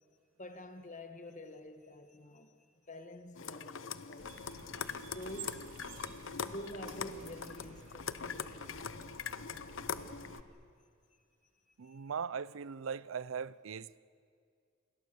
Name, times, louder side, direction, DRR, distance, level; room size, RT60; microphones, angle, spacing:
voice 1, 0.4-4.4 4.9-6.2 6.4-8.7 11.8-12.0, left 1 dB, 40° left, 1.6 m, -48 dB
sound 1, 3.4-10.4, left 6 dB, 70° left, 0.8 m, -42 dB
sound 2, 4.2-10.4, right 3 dB, 70° right, 2.3 m, -52 dB
voice 2, 11.8-14.0, right 6 dB, 85° right, 0.5 m, -39 dB
28.0 x 22.0 x 7.0 m
head